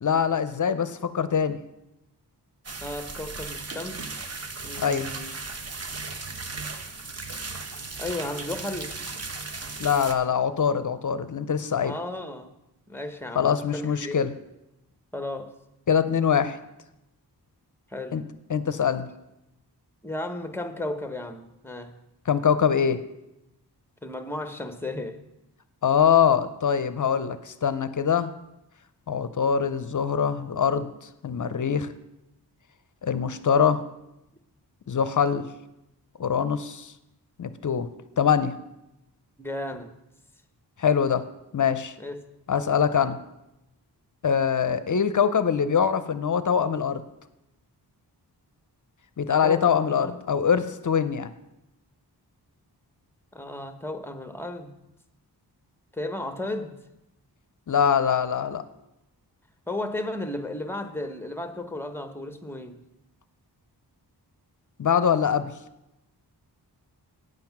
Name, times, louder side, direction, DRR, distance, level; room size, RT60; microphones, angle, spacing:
voice 1, 0.0-1.6 4.8-5.1 9.8-11.9 13.4-14.3 15.9-16.6 18.1-18.2 18.5-19.1 22.3-23.0 25.8-28.3 29.1-31.9 33.0-33.8 34.9-35.5 36.2-36.9 37.4-37.9 38.2-38.5 40.8-41.2 41.5-41.9 42.5-43.2 44.2-47.0 49.2-51.3 57.7-58.6 64.8-65.5, left 7 dB, 50° left, 13 dB, 0.6 m, -23 dB
sound 1, 2.6-10.1, right 3 dB, 40° right, 0.9 m, -36 dB
voice 2, 2.8-4.0 4.6-5.3 8.0-8.9 11.8-12.5 12.9-14.2 15.1-15.5 17.9-18.2 20.0-21.9 24.0-25.2 39.4-39.9 42.0-42.2 49.4-50.2 53.3-54.7 55.9-56.8 59.7-62.8, left 1 dB, 5° left, 7 dB, 0.8 m, -34 dB
9.2 x 7.7 x 5.9 m, 0.90 s
wide cardioid pair, 115°, 41 cm